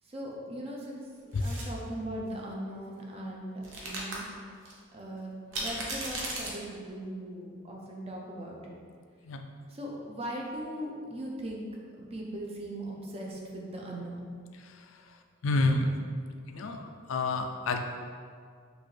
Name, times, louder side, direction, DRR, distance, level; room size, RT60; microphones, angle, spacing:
voice 1, 0.0-4.3 4.9-8.7 9.7-11.7 12.0-14.3, right 1 dB, 30° right, -2 dB, 0.6 m, -39 dB
sound 1, 1.3-1.7 3.6-4.2 4.7-4.8 5.5-6.5, right 1 dB, 65° right, 0.8 m, -36 dB
voice 2, 15.4-16.0 16.5-17.8, left 2 dB, 65° left, 5 dB, 0.4 m, -29 dB
6.0 x 2.5 x 3.2 m, 2.1 s
head